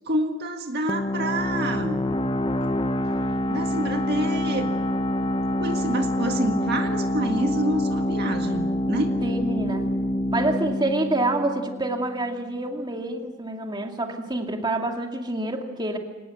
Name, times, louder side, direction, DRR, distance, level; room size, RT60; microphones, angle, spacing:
voice 1, 0.0-2.0 3.5-4.8 5.6-9.2, right 1 dB, 50° right, 4 dB, 1.8 m, -27 dB
sound 1, 0.9-12.3, left 1 dB, 25° left, 0.8 m, -26 dB
voice 2, 9.2-9.8 10.3-16.0, right 2 dB, 20° right, 3 dB, 2.4 m, -27 dB
25.0 x 19.5 x 7.8 m, 1.2 s
head